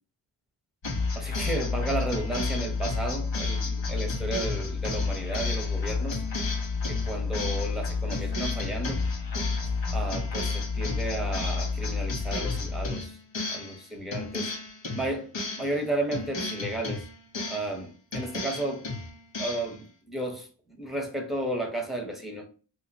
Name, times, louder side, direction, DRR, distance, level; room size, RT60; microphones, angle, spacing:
sound 1, 0.8-13.8 14.1-15.8 16.1-17.8 18.1-19.7, left 4 dB, 65° left, 1.1 m, -30 dB
voice 1, 1.1-6.2 6.9-9.0 9.9-13.2 13.5-14.5 14.9-17.1 17.5-18.9 19.4-22.5, right 1 dB, ahead, 1.0 m, -33 dB
3.1 x 2.8 x 2.9 m
cardioid pair, 45°, 49 cm